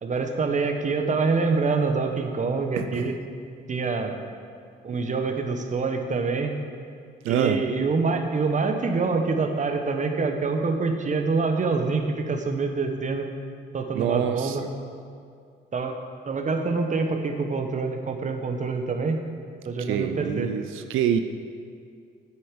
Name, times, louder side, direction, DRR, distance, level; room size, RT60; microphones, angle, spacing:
voice 1, 0.0-3.2 3.7-4.2 4.8-6.5 7.3-13.3 13.7-14.6 15.7-15.9 16.3-19.2 19.6-20.5, right 4 dB, 40° right, 5 dB, 1.1 m, -26 dB
voice 2, 2.8-3.1 7.2-7.6 13.9-14.7 19.8-21.2, right 9 dB, 85° right, 8 dB, 0.5 m, -26 dB
9.9 x 8.0 x 5.2 m, 2.3 s
cardioid pair, 90°, 20 cm